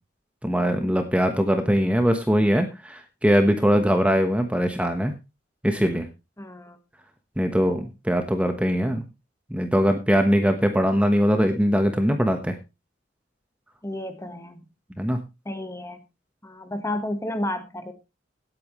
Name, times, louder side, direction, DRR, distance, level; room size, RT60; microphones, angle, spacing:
voice 1, 0.4-5.1 5.6-6.1 7.4-9.0 9.5-12.5 15.0-15.2, equal, 5° right, 6 dB, 1.2 m, -21 dB
voice 2, 6.4-6.8 7.5-7.8 13.8-14.6 15.4-16.0 16.4-17.9, left 1 dB, 15° left, 8 dB, 1.4 m, -32 dB
17.5 x 8.8 x 3.1 m, 0.26 s
head